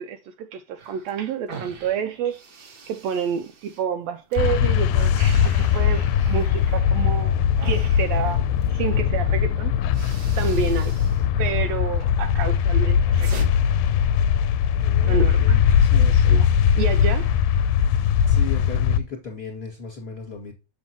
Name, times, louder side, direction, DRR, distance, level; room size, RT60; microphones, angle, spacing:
voice 1, 0.0-7.4 7.6-9.7 10.0-10.9 11.4-13.3 15.0-15.6 15.9-17.4, right 7 dB, 80° right, 1.6 m, -29 dB
sound 1, 0.8-4.4 4.7-8.8 9.4-9.5 9.8-11.3 11.6-12.1 12.5-13.5, right 5 dB, 55° right, 1.2 m, -42 dB
sound 2, 4.4-19.0, left 8 dB, 90° left, 2.0 m, -20 dB
voice 2, 14.8-16.1 18.3-20.5, left 4 dB, 25° left, 2.0 m, -36 dB
7.3 x 7.1 x 2.9 m
omnidirectional pair, 3.4 m